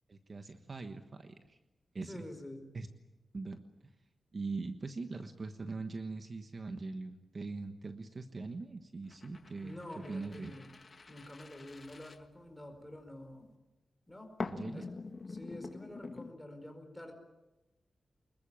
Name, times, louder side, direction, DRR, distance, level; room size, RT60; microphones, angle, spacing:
voice 1, 0.1-1.6 1.9-2.3 2.7-2.9 3.3-3.6 4.3-9.8 10.1-10.6 14.4-14.9, right 3 dB, 40° right, 7 dB, 1.3 m, -41 dB
voice 2, 2.0-2.6 9.6-10.8 11.1-13.5 14.1-14.3 14.7-14.9 15.3-17.1, left 1 dB, 5° left, 5 dB, 4.8 m, -48 dB
sound 1, 9.1-12.9 14.4-16.3, left 3 dB, 35° left, 1.7 m, -45 dB
25.5 x 21.5 x 9.0 m, 1.0 s
wide cardioid pair, 145°, 0 cm